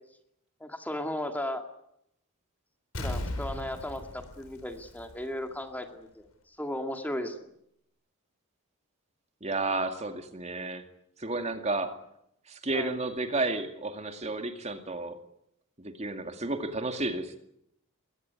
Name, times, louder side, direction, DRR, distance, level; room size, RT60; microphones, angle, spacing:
voice 1, 0.6-1.6 3.0-6.2 6.6-7.5 12.7-13.0, left 1 dB, 10° left, 5 dB, 2.1 m, -35 dB
Explosion, 2.9-5.5 5.9-6.0, left 1 dB, 75° left, 5.2 m, -37 dB
voice 2, 9.4-10.8 11.2-11.9 12.5-15.2 15.8-17.4, right 2 dB, 30° right, 7 dB, 2.2 m, -32 dB
22.0 x 18.0 x 9.6 m, 0.75 s
head